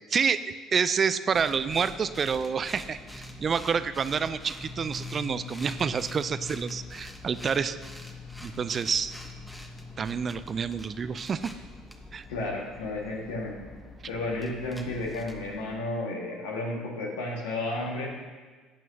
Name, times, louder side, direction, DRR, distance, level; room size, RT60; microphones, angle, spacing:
voice 1, 0.1-0.4 0.7-7.8 8.4-9.1 10.0-11.5 12.1-12.2, right 6 dB, 40° right, 14 dB, 0.4 m, -28 dB
sound 1, 1.3-15.8, left 2 dB, 5° left, 1.2 m, -43 dB
voice 2, 12.3-13.6 14.1-18.1, left 2 dB, 80° left, -1 dB, 1.8 m, -32 dB
14.0 x 9.0 x 2.8 m, 1.4 s
hypercardioid pair, 65°, 0 cm